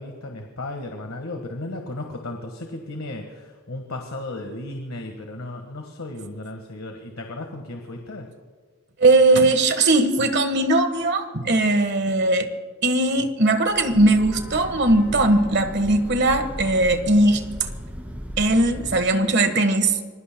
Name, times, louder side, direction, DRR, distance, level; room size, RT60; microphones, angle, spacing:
voice 1, 0.0-8.3, left 2 dB, 70° left, 3 dB, 1.6 m, -35 dB
voice 2, 9.0-12.5 12.8-17.4 18.4-20.0, right 2 dB, 50° right, 8 dB, 1.5 m, -19 dB
Breathing / Train, 13.6-19.2, equal, 5° right, 2.4 m, -36 dB
27.0 x 22.0 x 2.3 m, 1.5 s
head